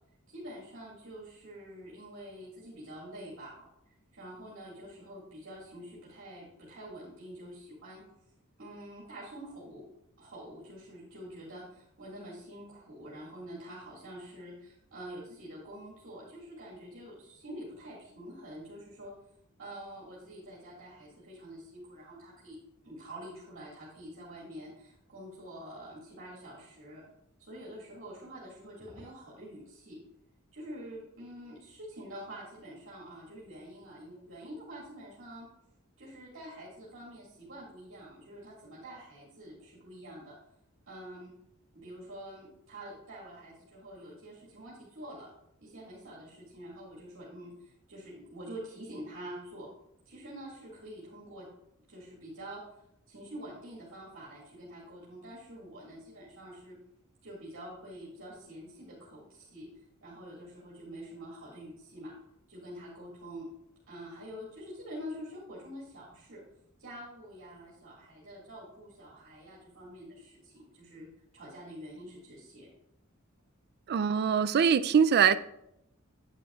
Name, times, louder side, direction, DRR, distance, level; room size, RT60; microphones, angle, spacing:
voice 1, 0.3-3.6 4.1-8.0 8.6-9.8 10.2-19.1 19.6-22.6 22.8-27.0 27.4-30.0 30.5-35.5 36.0-40.4 40.9-41.3 41.7-45.3 45.6-49.7 50.1-51.5 51.9-52.6 53.1-56.8 57.2-59.7 60.0-62.1 62.5-63.5 63.9-66.4 66.8-71.1 71.3-72.7, equal, 65° right, 2.0 m, -46 dB
voice 2, 73.9-75.4, right 7 dB, 50° right, 0.4 m, -23 dB
9.0 x 8.6 x 2.4 m
head